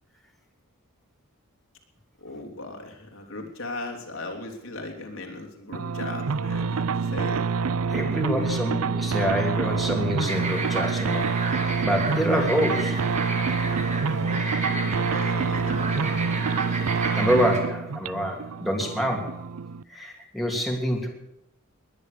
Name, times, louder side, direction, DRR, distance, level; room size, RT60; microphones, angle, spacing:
voice 1, 2.2-7.5 14.1-16.3, left 2 dB, 70° left, 1 dB, 3.2 m, -38 dB
sound 1, 5.7-19.8, right 5 dB, 85° right, 0.5 m, -27 dB
voice 2, 7.9-11.3 11.8-13.1 17.1-19.4 19.9-21.1, equal, ahead, 0 dB, 3.0 m, -26 dB
sound 2, 10.2-17.6, right 3 dB, 35° right, 2.8 m, -32 dB
20.5 x 10.5 x 6.7 m, 0.83 s
head